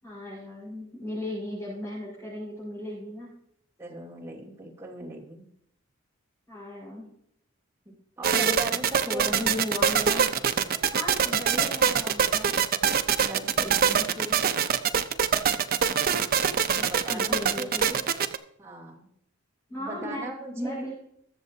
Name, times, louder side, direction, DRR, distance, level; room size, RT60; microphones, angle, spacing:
voice 1, 0.0-3.3 6.5-7.1 8.4-8.5 9.0-10.3 10.9-12.5 16.7-18.1 19.7-20.9, left 1 dB, 15° left, -10 dB, 4.8 m, -36 dB
voice 2, 3.8-5.5 7.8-9.5 13.2-14.4 16.7-17.7 18.6-19.1 19.8-20.9, right 1 dB, 15° right, -5 dB, 2.7 m, -39 dB
sound 1, 8.2-18.4, right 7 dB, 45° right, 0.6 m, -23 dB
21.0 x 7.3 x 2.7 m, 0.71 s
head